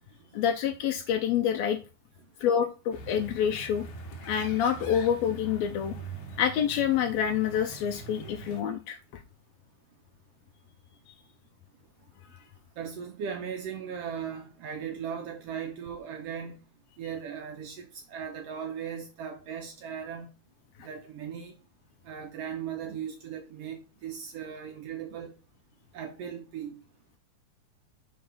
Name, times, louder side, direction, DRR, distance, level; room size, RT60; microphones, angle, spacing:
voice 1, 0.3-1.8 2.4-3.9 4.3-6.0 6.4-9.2 20.8-20.9, left 9 dB, 90° left, 1.5 m, -27 dB
sound 1, 2.9-8.6, right 3 dB, 70° left, 2.6 m, -43 dB
voice 2, 12.8-16.6 17.0-20.3 20.8-21.6 22.0-25.3 25.9-26.8, right 7 dB, 80° right, 1.4 m, -38 dB
5.3 x 3.8 x 5.5 m
omnidirectional pair, 3.6 m